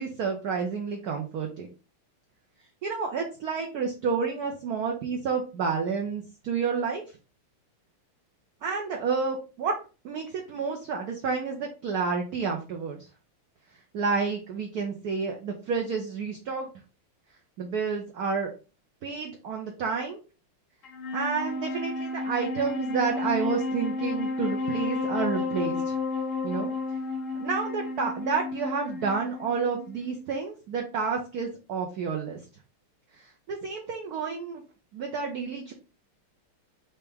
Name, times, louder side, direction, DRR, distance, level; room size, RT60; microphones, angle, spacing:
voice 1, 0.0-1.7 2.8-7.0 8.6-9.7 10.0-13.1 13.9-16.7 17.6-18.5 19.0-20.2 21.1-25.9 26.4-26.7 27.3-32.4 33.1-34.6 34.9-35.7, right 5 dB, 70° right, 2 dB, 0.9 m, -30 dB
Wind instrument woodwind instrument, 20.8-30.3, left 3 dB, 60° left, 0.8 m, -32 dB
4.5 x 2.9 x 3.4 m, 0.33 s
omnidirectional pair, 2.4 m